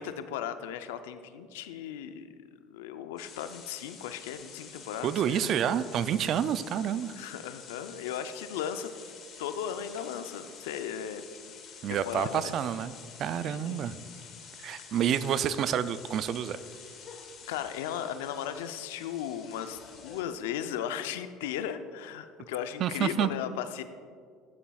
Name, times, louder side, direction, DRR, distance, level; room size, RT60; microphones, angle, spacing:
voice 1, 0.0-2.3 2.7-5.5 7.1-8.9 9.4-11.2 11.9-12.5 13.4-13.8 17.5-23.8, left 9 dB, 85° left, 10 dB, 0.5 m, -36 dB
sound 1, 3.2-20.2, left 6 dB, 50° left, 1.8 m, -49 dB
voice 2, 5.0-7.1 11.8-12.9 13.2-14.0 14.6-16.6 22.8-23.3, right 9 dB, 50° right, 15 dB, 0.4 m, -28 dB
14.5 x 7.2 x 2.3 m, 2.1 s
supercardioid pair, 85°, 0 cm